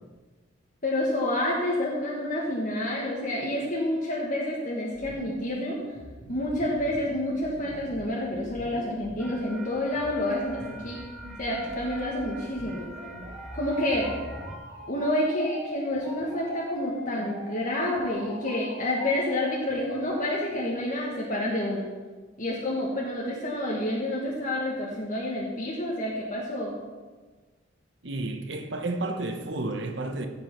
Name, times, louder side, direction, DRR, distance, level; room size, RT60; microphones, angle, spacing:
voice 1, 0.8-5.8 6.3-11.0 11.4-12.9 13.5-14.1 14.9-21.8 22.4-26.7, left 1 dB, 40° left, 1.5 m, -28 dB
sound 1, 4.9-20.9, left 1 dB, 30° right, 4.1 m, -44 dB
sound 2, 9.2-14.6, right 1 dB, ahead, 1.2 m, -44 dB
voice 2, 28.0-30.3, right 2 dB, 60° right, 1.1 m, -31 dB
15.5 x 5.2 x 5.9 m
head